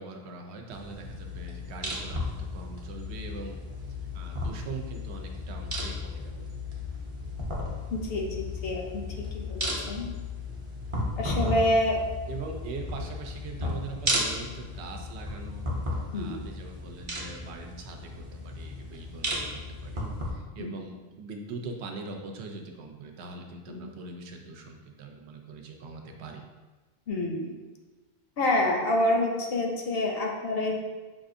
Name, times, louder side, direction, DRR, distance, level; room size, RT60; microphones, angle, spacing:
voice 1, 0.0-3.6 4.1-6.5 12.3-15.7 16.1-26.4, right 3 dB, 80° right, 3 dB, 0.8 m, -42 dB
sound 1, 0.7-20.3, left 1 dB, 35° right, 0.6 m, -34 dB
voice 2, 7.9-10.1 11.2-12.0 16.1-16.4 20.6-20.7 23.7-23.9 27.1-27.5 28.4-30.8, left 1 dB, 70° left, 0 dB, 0.8 m, -27 dB
5.4 x 2.4 x 2.6 m, 1.3 s
omnidirectional pair, 1.1 m